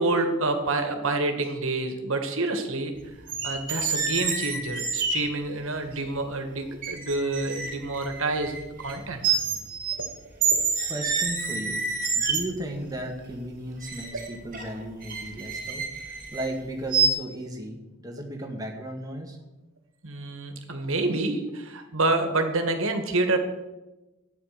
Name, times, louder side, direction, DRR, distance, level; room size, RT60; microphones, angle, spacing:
voice 1, 0.0-3.1 3.4-9.3 10.5-10.9 14.1-14.2 20.0-23.4, right 2 dB, 65° right, 6 dB, 1.9 m, -28 dB
sound 1, 3.3-5.2 6.2-6.3 6.8-9.0 9.2-10.1 10.4-12.7 13.8-16.5 16.9-17.1, right 5 dB, 40° right, 2.5 m, -28 dB
voice 2, 10.9-11.9 12.2-19.4, right 1 dB, 15° right, 1 dB, 2.0 m, -35 dB
13.0 x 9.2 x 6.8 m, 1.1 s
head